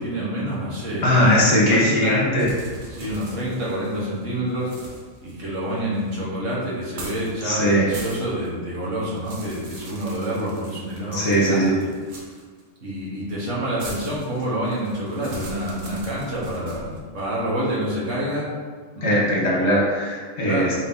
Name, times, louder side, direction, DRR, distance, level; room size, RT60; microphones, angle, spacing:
voice 1, 0.0-1.3 1.7-2.2 2.9-4.9 5.2-11.9 12.8-18.5 19.0-19.1 20.4-20.8, right 1 dB, 75° right, -6 dB, 1.6 m, -27 dB
voice 2, 1.0-2.5 7.4-7.8 11.1-11.7 19.0-20.8, equal, 60° left, -4 dB, 1.3 m, -19 dB
sound 1, 2.4-4.2 4.6-6.1 6.8-7.3 7.7-8.5 8.8-12.6 13.8-17.0, right 2 dB, 45° right, 0.8 m, -40 dB
4.9 x 2.8 x 3.6 m, 1.5 s
omnidirectional pair, 1.3 m